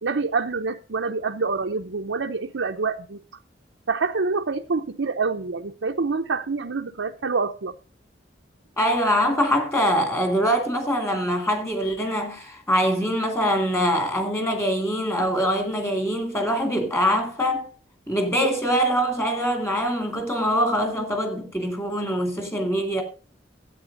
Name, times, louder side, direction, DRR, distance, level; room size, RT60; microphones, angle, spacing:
voice 1, 0.0-3.2 3.9-7.7, right 4 dB, 85° right, 0.7 m, -26 dB
voice 2, 8.8-17.7 18.1-23.0, equal, 15° left, 2.3 m, -23 dB
12.5 x 8.8 x 5.2 m
head